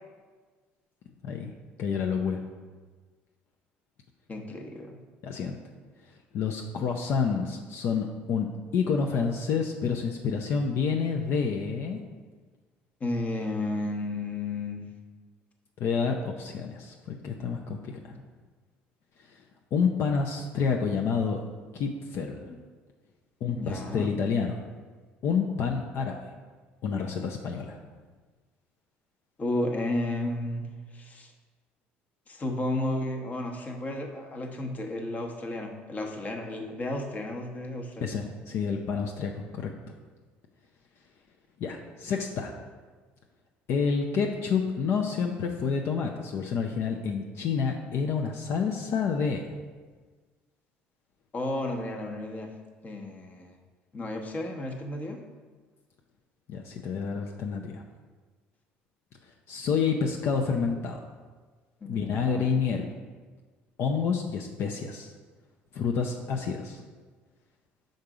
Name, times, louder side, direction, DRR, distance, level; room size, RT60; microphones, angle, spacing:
voice 1, 1.8-2.4 5.2-5.6 6.3-12.0 15.8-18.1 19.2-19.4 19.7-21.4 21.7-22.5 23.4-24.6 25.2-26.3 26.8-27.8 38.0-39.7 41.6-42.5 43.7-49.5 56.5-57.8 59.5-61.0 61.8-62.9 63.8-65.1 65.7-66.8, left 5 dB, 60° left, 2 dB, 0.5 m, -29 dB
voice 2, 4.3-5.0 13.0-14.9 22.5-22.6 23.5-24.1 29.4-30.7 30.9-31.3 32.3-38.1 51.3-52.5 52.8-53.5 53.9-55.2 61.8-62.4, left 1 dB, 35° left, 3 dB, 0.9 m, -33 dB
5.4 x 3.9 x 4.8 m, 1.4 s
supercardioid pair, 80°, 5 cm